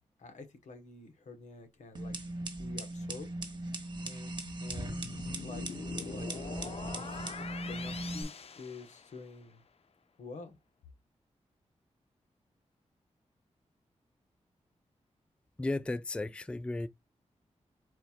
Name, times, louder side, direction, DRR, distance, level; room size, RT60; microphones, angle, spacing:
voice 1, 0.2-3.3 3.6-3.7 4.0-5.0 5.4-6.3 6.6-9.6 10.2-10.6, left 3 dB, 85° left, 1.2 m, -49 dB
sound 1, 1.9-8.2, right 1 dB, 40° right, 1.2 m, -39 dB
sound 2, 4.7-9.5, left 6 dB, 55° left, 0.5 m, -44 dB
voice 2, 15.6-16.9, left 2 dB, 10° left, 0.3 m, -34 dB
4.3 x 4.3 x 2.4 m
wide cardioid pair, 95°, 12 cm